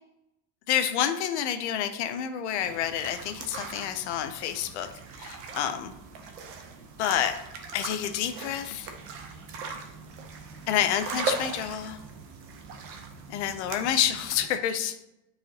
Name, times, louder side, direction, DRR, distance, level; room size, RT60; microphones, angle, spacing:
voice 1, 0.7-5.9 7.0-7.4 7.7-8.9 10.7-12.0 13.3-15.0, left 10 dB, 45° left, 8 dB, 0.5 m, -28 dB
sound 1, 2.6-14.5, right 4 dB, 25° right, 0.5 m, -39 dB
8.6 x 4.9 x 2.8 m, 0.85 s
supercardioid pair, 165°, 50 cm